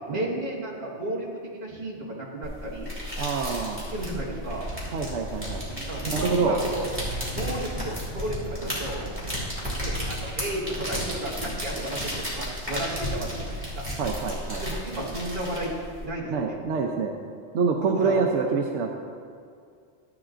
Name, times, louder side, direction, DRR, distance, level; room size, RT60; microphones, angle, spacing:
voice 1, 0.1-2.9 3.9-4.7 5.9-6.9 7.3-9.1 9.8-13.9 14.6-15.7 16.0-16.6 17.8-18.2, right 1 dB, 45° right, -4 dB, 1.9 m, -33 dB
sound 1, 2.4-16.0, equal, 10° right, 2.5 m, -33 dB
voice 2, 3.2-3.8 4.9-5.6 6.1-6.6 14.0-14.6 16.2-17.1 17.5-19.0, right 5 dB, 80° right, 1 dB, 1.0 m, -26 dB
14.0 x 8.8 x 2.5 m, 2.3 s
omnidirectional pair, 1.2 m